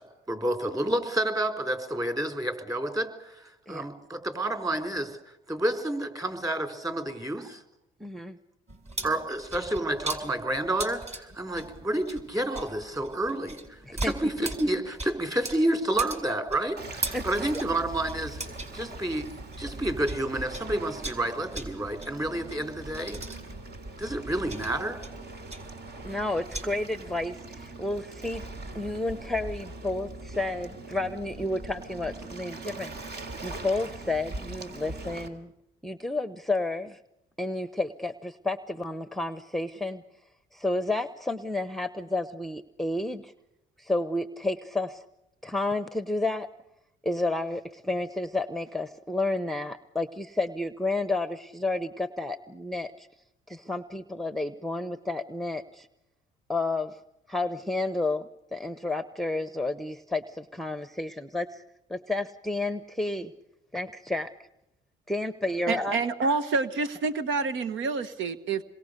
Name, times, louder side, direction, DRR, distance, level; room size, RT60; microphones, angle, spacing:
voice 1, 0.0-5.2 5.5-7.6 9.0-18.4 18.7-19.3 19.6-23.2 24.0-25.0, right 1 dB, 15° right, 6 dB, 4.0 m, -29 dB
voice 2, 8.0-8.4 13.8-14.1 17.1-17.2 26.0-28.5 28.7-32.9 33.4-35.5 35.8-37.0 37.4-40.0 40.5-43.3 43.8-45.0 45.4-46.5 47.0-53.1 53.5-55.9 56.5-57.0 57.3-61.6 61.9-63.3 63.7-64.3 65.1-66.0, left 2 dB, ahead, 12 dB, 0.9 m, -31 dB
sound 1, 8.7-20.2 20.5-26.7, right 2 dB, 35° right, 4.3 m, -39 dB
Waves surf, 16.8-35.3, right 2 dB, 55° right, 3.1 m, -41 dB
voice 3, 65.7-68.6, right 4 dB, 75° right, 11 dB, 1.2 m, -28 dB
27.5 x 22.0 x 6.7 m, 0.86 s
cardioid pair, 90°, 20 cm